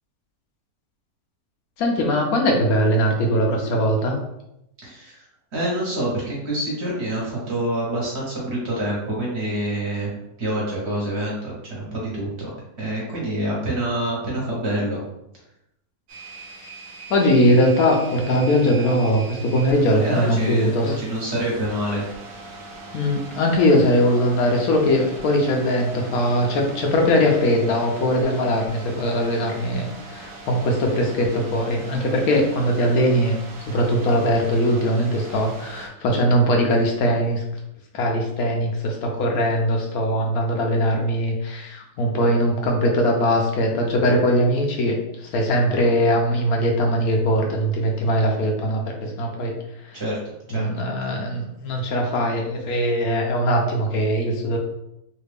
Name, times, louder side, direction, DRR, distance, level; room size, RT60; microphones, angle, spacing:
voice 1, 1.8-4.1 17.1-21.0 22.9-33.4 33.7-37.4 37.9-49.5 49.8-50.0 50.5-54.6, equal, 75° left, 1 dB, 1.1 m, -21 dB
voice 2, 4.8-5.2 5.5-10.1 10.4-12.5 12.8-15.0 20.0-22.1 49.9-50.2 50.5-50.6, right 1 dB, 50° right, -5 dB, 1.3 m, -26 dB
sound 1, 16.1-35.9, right 2 dB, 65° right, 1.0 m, -40 dB
3.2 x 2.4 x 3.3 m, 0.82 s
omnidirectional pair, 1.6 m